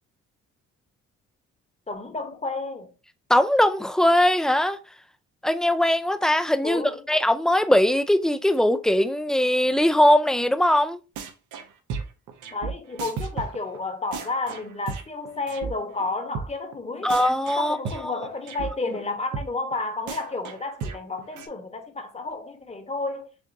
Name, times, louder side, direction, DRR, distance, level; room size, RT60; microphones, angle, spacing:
voice 1, 1.9-2.9 6.6-7.1 12.5-17.1 17.6-23.3, left 3 dB, 20° left, 1.0 m, -31 dB
voice 2, 3.3-4.8 5.4-6.8 7.1-11.0 17.0-17.8 18.0-18.1, left 1 dB, ahead, 0.4 m, -20 dB
sound 1, 11.2-11.6 11.9-15.7 16.0-16.1 16.3-16.5 16.7-16.8 17.1-18.7 19.0-19.1 19.3-19.5 19.7-19.8 20.1-21.5, right 5 dB, 80° right, 0.8 m, -34 dB
6.5 x 2.5 x 2.6 m
cardioid pair, 90°, 30 cm